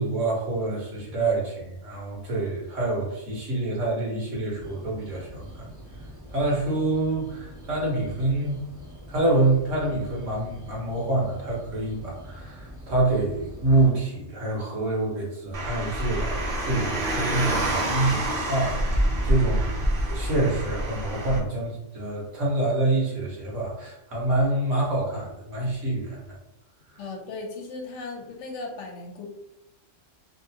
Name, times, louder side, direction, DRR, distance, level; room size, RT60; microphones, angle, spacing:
voice 1, 0.0-5.5 6.3-8.6 9.1-19.7 20.1-26.2, right 2 dB, 75° right, -4 dB, 1.4 m, -26 dB
sound 1, 4.6-13.9, equal, 20° right, 0.5 m, -44 dB
Car, 15.5-21.4, right 1 dB, 50° right, 0.9 m, -27 dB
voice 2, 27.0-29.2, left 3 dB, 70° left, 2 dB, 0.9 m, -37 dB
3.0 x 2.5 x 2.7 m, 0.88 s
omnidirectional pair, 1.3 m